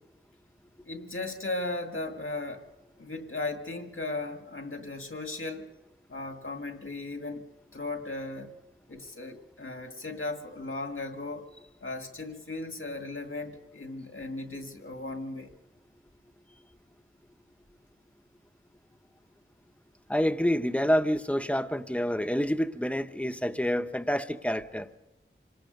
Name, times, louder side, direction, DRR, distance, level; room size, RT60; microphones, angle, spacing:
voice 1, 0.9-2.7 3.0-5.7 6.1-7.5 7.7-8.5 8.9-11.5 11.8-15.5, left 2 dB, 85° left, 1.9 m, -36 dB
voice 2, 20.1-24.9, equal, 5° left, 0.9 m, -27 dB
27.0 x 19.0 x 5.3 m
wide cardioid pair, 45°, 21 cm